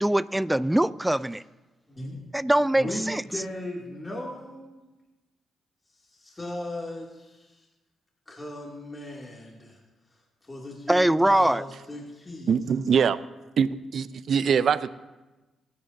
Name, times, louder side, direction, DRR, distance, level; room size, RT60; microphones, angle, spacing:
voice 1, 0.0-1.4 2.3-3.2 10.9-11.6, right 1 dB, 10° right, 17 dB, 0.4 m, -22 dB
voice 2, 1.9-2.2 2.7-4.9 6.1-7.7 8.3-9.8 10.4-12.5, left 1 dB, 25° left, -2 dB, 2.5 m, -37 dB
voice 3, 12.5-13.2 13.6-14.9, right 7 dB, 65° right, 15 dB, 0.5 m, -23 dB
25.0 x 10.0 x 2.7 m, 1.1 s
cardioid pair, 70°, 0 cm